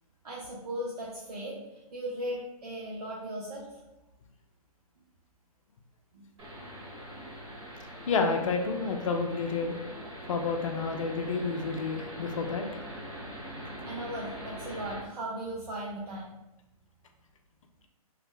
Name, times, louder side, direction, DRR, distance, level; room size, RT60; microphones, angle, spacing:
voice 1, 0.2-3.8 6.1-6.3 13.8-16.3, right 1 dB, 75° right, -5 dB, 0.8 m, -37 dB
sound 1, 6.4-15.0, equal, 50° right, 1.3 m, -42 dB
voice 2, 8.1-9.8 10.3-12.7, left 4 dB, 55° left, 4 dB, 0.5 m, -29 dB
2.8 x 2.0 x 3.8 m, 0.96 s
hypercardioid pair, 160°, 20 cm